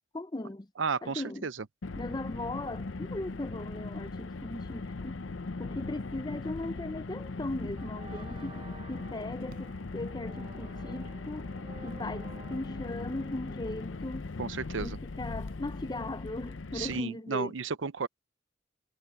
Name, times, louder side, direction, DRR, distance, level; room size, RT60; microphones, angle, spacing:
voice 1, 0.1-0.7 1.0-1.5 2.0-5.2 5.6-8.6 8.9-11.5 11.8-14.3 14.8-17.5, left 2 dB, 20° left, 0.6 m, -38 dB
voice 2, 0.8-1.5 14.4-15.0 16.7-18.1, right 5 dB, 80° right, 0.7 m, -33 dB
Car, 1.8-17.0, left 3 dB, 85° left, 0.7 m, -39 dB
sound 1, 7.7-14.6, right 2 dB, 25° right, 7.5 m, -52 dB
Fireworks, 9.5-10.8 12.6-12.7 12.9-13.0, right 1 dB, 50° right, 5.0 m, -56 dB
head